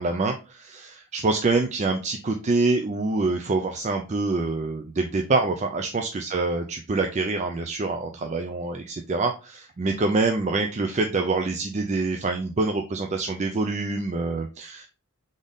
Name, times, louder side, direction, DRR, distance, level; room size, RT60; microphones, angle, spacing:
voice 1, 0.0-14.9, right 3 dB, 30° right, 4 dB, 0.4 m, -26 dB
3.9 x 3.7 x 3.5 m, 0.33 s
head